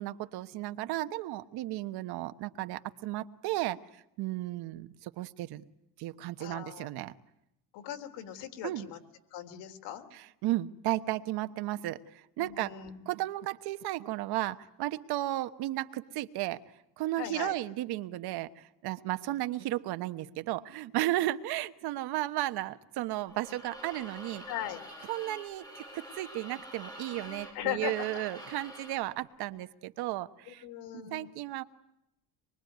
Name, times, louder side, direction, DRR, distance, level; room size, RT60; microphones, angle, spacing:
voice 1, 0.0-3.8 4.2-5.6 6.0-7.1 8.6-8.9 10.1-12.7 13.1-16.6 17.0-24.5 25.1-30.6 30.9-31.6, right 16 dB, 65° right, 11 dB, 1.3 m, -34 dB
voice 2, 6.4-6.9 7.7-9.0 9.3-10.1 12.4-13.1 17.2-17.5 24.5-24.8 27.5-28.2 30.5-31.2, left 12 dB, 80° left, 5 dB, 3.6 m, -39 dB
sound 1, 23.3-29.0, equal, 10° left, 7.2 m, -47 dB
25.5 x 23.5 x 9.4 m, 0.83 s
cardioid pair, 160°, 41 cm